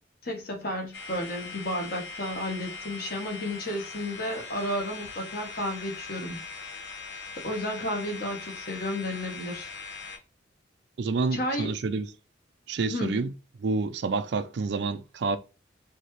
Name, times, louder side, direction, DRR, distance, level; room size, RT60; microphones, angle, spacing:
voice 1, 0.2-6.4 7.4-9.7 11.3-11.7 12.9-13.2, left 1 dB, 50° left, 1.2 m, -32 dB
sound 1, 0.9-10.2, left 4 dB, 70° left, 1.0 m, -41 dB
voice 2, 11.0-12.1 12.7-13.3 13.6-15.4, right 4 dB, 60° right, 0.4 m, -28 dB
4.3 x 2.8 x 3.1 m
head